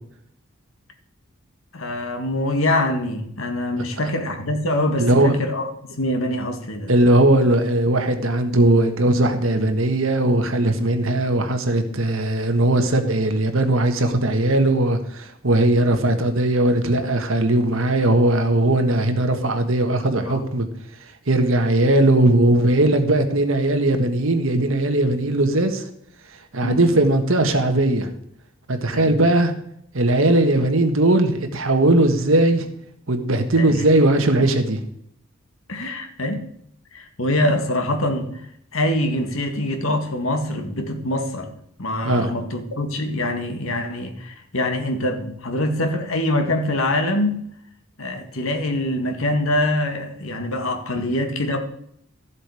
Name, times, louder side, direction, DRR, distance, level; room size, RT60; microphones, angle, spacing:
voice 1, 1.7-6.9 20.3-20.5 26.6-26.9 28.9-29.1 33.5-33.8 35.7-36.5 36.9-38.3 38.7-41.5 41.8-47.5 48.0-51.6, left 1 dB, 70° left, 1.8 m, -24 dB
voice 2, 5.0-5.3 6.9-20.7 21.3-25.8 26.5-28.1 28.7-29.5 29.9-32.7 33.1-34.8 42.0-42.3 50.9-51.0, right 1 dB, 70° right, 1.5 m, -19 dB
14.0 x 7.6 x 4.9 m
head